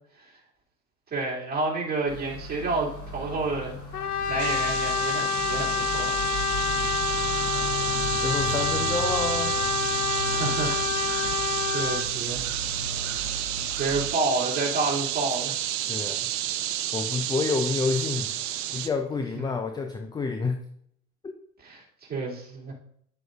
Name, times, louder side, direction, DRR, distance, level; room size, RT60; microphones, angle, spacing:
voice 1, 1.1-6.2 10.3-12.5 13.0-13.2 13.8-15.6 19.3-19.6 21.6-22.7, right 3 dB, 20° right, -4 dB, 2.7 m, -30 dB
sound 1, 2.1-14.1, right 1 dB, 40° left, 3.3 m, -36 dB
Brass instrument, 3.9-12.1, left 6 dB, 85° left, 0.8 m, -28 dB
sound 2, 4.4-18.9, right 12 dB, 40° right, 0.8 m, -31 dB
voice 2, 8.2-9.6 15.9-16.3 16.9-18.3 18.7-20.6 21.2-21.3, left 4 dB, 10° left, 5 dB, 0.5 m, -28 dB
9.6 x 7.7 x 2.6 m, 0.68 s
hypercardioid pair, 85°, 44 cm